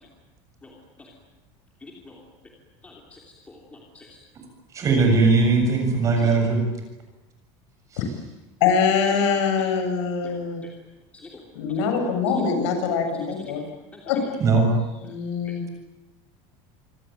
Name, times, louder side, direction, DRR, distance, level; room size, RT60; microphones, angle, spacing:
voice 1, 0.6-1.1 1.8-2.2 2.8-4.2 6.2-6.4 9.6-9.7 10.2-10.7 11.1-11.5 12.3-12.4 13.2-14.0, left 3 dB, 10° left, -1 dB, 3.0 m, -46 dB
voice 2, 4.7-6.6 14.4-14.7, right 4 dB, 20° right, 3 dB, 7.3 m, -19 dB
voice 3, 8.6-10.6 11.5-13.6 14.1-14.3 15.0-15.6, left 6 dB, 75° left, 5 dB, 7.5 m, -23 dB
27.0 x 23.5 x 9.2 m, 1.0 s
cardioid pair, 180°, 15 cm